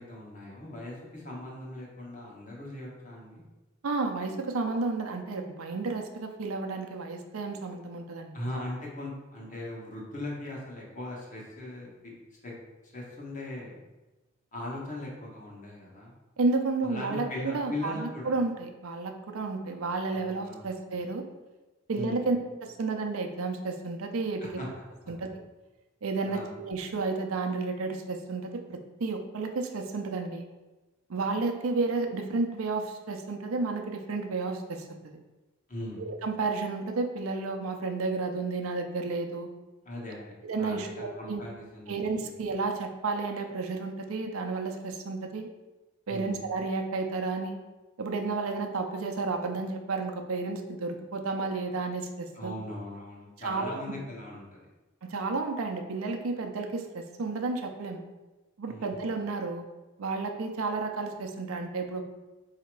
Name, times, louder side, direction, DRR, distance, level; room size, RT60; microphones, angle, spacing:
voice 1, 0.0-3.4 8.3-12.1 12.4-12.5 12.9-13.8 14.5-16.1 16.8-18.4 20.1-21.0 21.9-22.2 24.6-24.7 26.2-26.5 35.7-36.0 39.8-42.4 46.1-46.4 52.3-54.6 58.7-58.9, left 1 dB, 35° left, -3 dB, 1.1 m, -39 dB
voice 2, 3.8-8.3 16.4-21.2 21.9-22.4 22.6-24.5 25.1-25.3 26.0-30.4 31.1-35.2 36.0-39.5 40.4-41.4 41.9-45.5 46.1-47.6 48.0-52.5 53.4-53.8 55.0-58.0 58.6-59.6 60.0-62.0, right 3 dB, 85° right, 4 dB, 0.5 m, -32 dB
4.1 x 2.8 x 4.5 m, 1.1 s
head